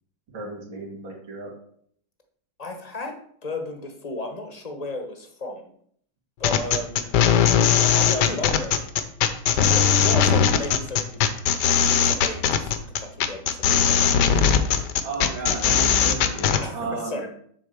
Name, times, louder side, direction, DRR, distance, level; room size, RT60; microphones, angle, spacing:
voice 1, 0.3-1.5 15.0-17.3, right 3 dB, 65° right, -3 dB, 2.9 m, -33 dB
voice 2, 2.6-5.7 6.4-7.3 7.7-8.9 9.6-11.2 11.6-14.2 15.5-15.6 16.6-17.3, left 2 dB, 35° left, 4 dB, 0.6 m, -34 dB
sound 1, 6.4-16.6, left 8 dB, 65° left, 1.2 m, -20 dB
8.0 x 3.9 x 6.8 m, 0.63 s
omnidirectional pair, 2.2 m